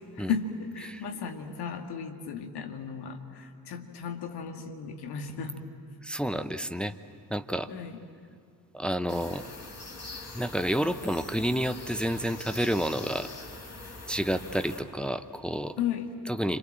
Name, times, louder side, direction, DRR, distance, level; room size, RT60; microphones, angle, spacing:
voice 1, 0.2-5.6 7.7-8.0 15.8-16.1, left 7 dB, 50° left, 4 dB, 2.4 m, -35 dB
voice 2, 6.0-6.9 7.3-7.7 8.7-9.4 10.3-13.3 14.1-15.7 16.3-16.6, equal, ahead, 11 dB, 0.9 m, -29 dB
sound 1, 9.1-14.8, left 2 dB, 30° left, 5.2 m, -43 dB
28.5 x 27.0 x 7.7 m, 2.2 s
figure-of-eight pair, 45°, 49 cm